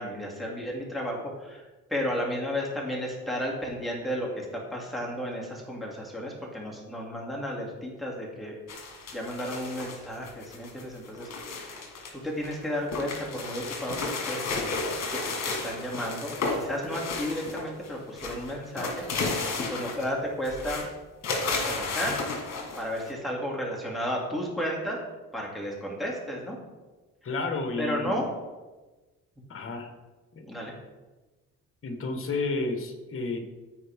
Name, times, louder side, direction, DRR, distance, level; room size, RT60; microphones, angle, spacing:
voice 1, 0.0-8.6 9.1-11.8 12.1-14.6 15.1-19.0 19.3-20.9 21.7-22.2 22.7-25.0 25.3-26.6 27.8-28.3 30.5-30.7, equal, ahead, -3 dB, 2.6 m, -33 dB
sound 1, 8.7-12.1 12.4-17.9 18.1-20.1 20.4-20.9 21.2-23.1, left 3 dB, 60° left, 1.8 m, -33 dB
voice 2, 27.2-28.2 29.5-29.9 30.3-30.4 31.8-33.4, left 3 dB, 45° left, 5 dB, 1.5 m, -31 dB
14.0 x 4.7 x 3.6 m, 1.2 s
cardioid pair, 90°, 30 cm